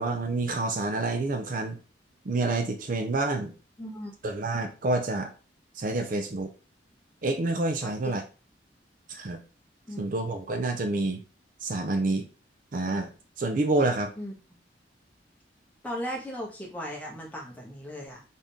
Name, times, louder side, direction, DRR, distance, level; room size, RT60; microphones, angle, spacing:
voice 1, 0.0-1.8 2.2-3.5 4.2-5.3 5.8-6.5 7.2-8.2 9.1-9.4 10.0-11.2 11.6-12.2 12.7-13.1 13.4-14.1, right 2 dB, 50° right, 6 dB, 0.5 m, -28 dB
voice 2, 3.8-4.1 7.8-8.2 9.9-10.2 14.2-14.3 15.8-18.2, equal, 10° left, -3 dB, 1.3 m, -37 dB
4.1 x 3.7 x 3.5 m, 0.35 s
head